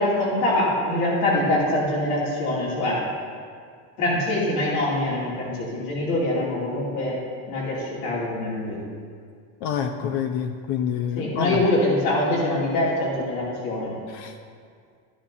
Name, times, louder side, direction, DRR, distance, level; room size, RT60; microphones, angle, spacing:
voice 1, 0.0-3.1 4.0-7.2 7.5-8.8 11.2-13.9, left 1 dB, 90° left, -5 dB, 2.9 m, -24 dB
voice 2, 9.6-11.6 14.1-14.4, left 8 dB, 65° left, 5 dB, 0.7 m, -27 dB
13.0 x 10.0 x 2.8 m, 2.1 s
supercardioid pair, 115°, 41 cm